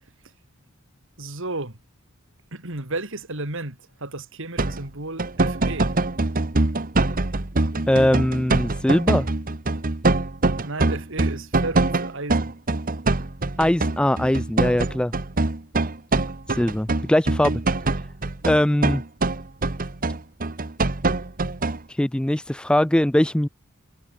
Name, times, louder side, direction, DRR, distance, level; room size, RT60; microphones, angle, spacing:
voice 1, 1.2-1.8 2.5-6.0 10.6-12.5, right 2 dB, 60° right, 3.4 m, -33 dB
sound 1, 4.6-4.9 5.2-21.8, right 2 dB, 40° right, 1.3 m, -24 dB
voice 2, 7.9-9.3 13.6-15.1 16.5-17.6 18.5-19.0 21.9-23.5, left 1 dB, 5° left, 0.3 m, -21 dB
head